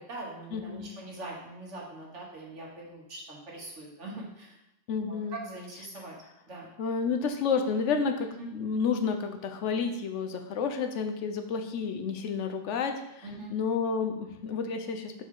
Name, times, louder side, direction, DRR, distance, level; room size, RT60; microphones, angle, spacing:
voice 1, 0.0-4.6 5.1-6.2 6.5-6.7 8.4-8.5 13.2-13.5, right 2 dB, 85° right, -3 dB, 1.9 m, -42 dB
voice 2, 0.5-0.9 4.9-5.4 6.8-15.2, left 5 dB, 85° left, 6 dB, 1.0 m, -30 dB
6.3 x 5.1 x 3.8 m, 0.86 s
omnidirectional pair, 1.2 m